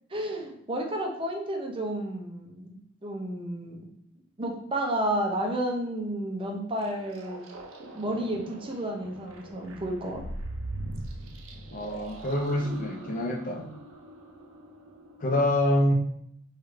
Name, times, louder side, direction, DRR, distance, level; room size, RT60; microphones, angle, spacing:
voice 1, 0.1-3.8 4.4-7.4 7.9-10.2, right 1 dB, 25° right, 1 dB, 0.5 m, -31 dB
sound 1, 6.8-15.3, right 1 dB, 85° right, 0.5 m, -41 dB
voice 2, 11.7-13.7 15.2-15.9, left 1 dB, 45° left, 2 dB, 0.5 m, -26 dB
3.1 x 2.4 x 3.1 m, 0.70 s
head